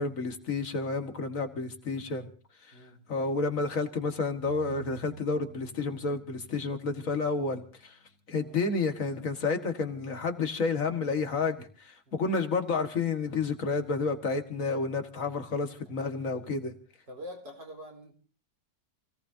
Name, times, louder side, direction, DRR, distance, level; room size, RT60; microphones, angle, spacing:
voice 1, 0.0-2.3 3.1-7.9 8.3-16.7, left 4 dB, 50° left, 7 dB, 2.0 m, -30 dB
sound 1, 4.5-8.2, right 2 dB, 40° right, 4.2 m, -50 dB
voice 2, 17.1-18.1, left 1 dB, 85° right, 2 dB, 4.8 m, -46 dB
28.5 x 17.5 x 2.7 m, 0.39 s
omnidirectional pair, 1.9 m